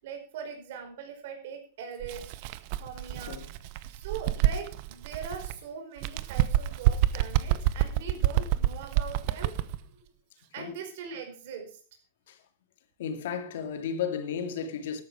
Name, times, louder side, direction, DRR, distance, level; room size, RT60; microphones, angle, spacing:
voice 1, 0.0-2.3 2.7-3.4 3.9-9.5 10.5-11.8, right 6 dB, 60° right, 5.1 m, -41 dB
Bird, 2.0-5.6 6.0-9.8, right 13 dB, 45° right, 0.9 m, -28 dB
voice 2, 13.0-15.0, left 7 dB, 75° left, 2.8 m, -34 dB
14.0 x 12.0 x 4.9 m
supercardioid pair, 170°, 0 cm